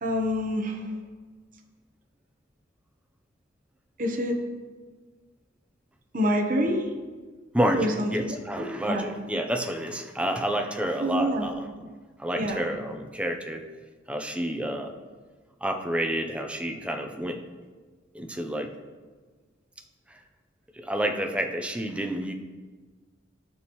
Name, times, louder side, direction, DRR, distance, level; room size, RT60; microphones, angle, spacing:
voice 1, 0.0-0.9 4.0-4.4 6.1-6.9 7.8-8.1 8.6-9.1 11.0-11.5 12.4-12.6, equal, 45° right, 1 dB, 1.0 m, -26 dB
voice 2, 7.5-11.7 12.2-13.6 14.1-14.9 15.6-17.4 18.1-18.7 20.1-20.2 20.7-22.3, right 1 dB, 5° right, 4 dB, 0.6 m, -29 dB
14.5 x 6.0 x 3.1 m, 1.4 s
head